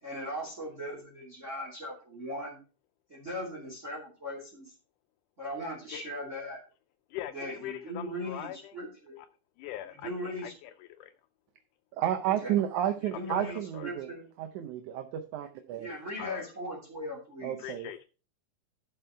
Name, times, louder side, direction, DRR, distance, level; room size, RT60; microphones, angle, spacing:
voice 1, 0.0-2.6 3.1-4.7 5.4-6.6 7.3-9.2 9.9-10.5 12.2-12.5 13.1-14.3 15.8-17.7, equal, 25° right, -3 dB, 2.9 m, -39 dB
voice 2, 7.1-8.8 9.2-9.3 9.6-11.1 13.3-13.9 16.2-16.5 17.6-18.1, left 13 dB, 85° left, 7 dB, 2.1 m, -42 dB
voice 3, 11.9-14.1 14.4-15.9 17.4-17.9, right 11 dB, 75° right, 5 dB, 2.1 m, -31 dB
11.5 x 5.6 x 4.4 m, 0.34 s
omnidirectional pair, 3.6 m